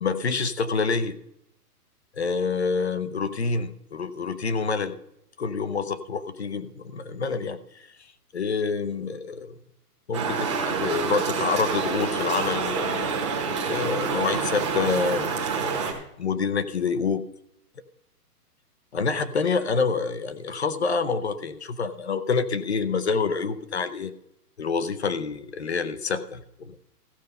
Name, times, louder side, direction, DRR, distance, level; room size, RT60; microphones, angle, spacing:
voice 1, 0.0-1.2 2.2-5.0 5.4-7.9 8.3-9.5 10.1-13.1 13.6-17.3 18.9-24.1 24.6-26.8, left 5 dB, 45° left, 12 dB, 0.7 m, -27 dB
sound 1, 10.1-15.9, right 5 dB, 20° right, 1.1 m, -27 dB
15.0 x 6.7 x 5.3 m, 0.77 s
hypercardioid pair, 175°, 48 cm